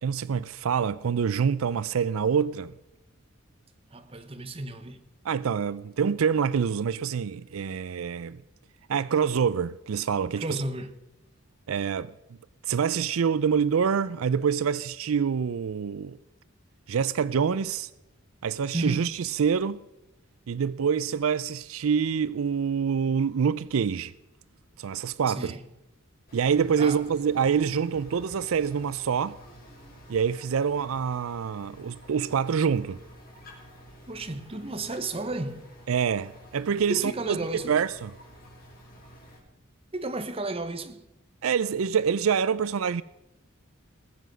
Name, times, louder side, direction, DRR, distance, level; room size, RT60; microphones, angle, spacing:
voice 1, 0.0-2.7 5.2-8.4 8.9-10.6 11.7-12.1 12.6-16.2 16.9-17.9 18.4-19.8 20.5-24.1 24.8-25.5 26.3-29.4 30.1-33.0 35.9-37.4 37.7-38.1 41.4-43.0, right 7 dB, 80° right, 0.4 m, -26 dB
voice 2, 3.9-5.0 10.4-11.0 18.7-19.1 25.3-25.6 26.8-27.1 34.1-35.7 36.9-37.8 39.9-41.0, right 2 dB, 30° right, 1.0 m, -33 dB
sound 1, 26.3-39.4, equal, 45° left, 4.7 m, -50 dB
19.5 x 7.9 x 6.1 m
head